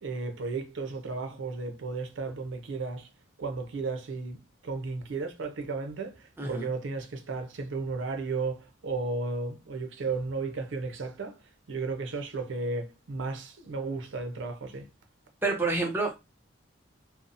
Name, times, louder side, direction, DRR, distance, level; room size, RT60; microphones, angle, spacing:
voice 1, 0.0-3.1 3.4-4.4 4.6-11.4 11.7-14.9, right 3 dB, 70° right, 0.5 m, -34 dB
voice 2, 6.4-6.7 15.4-16.1, right 3 dB, 10° right, 0.5 m, -28 dB
2.7 x 2.0 x 2.5 m
head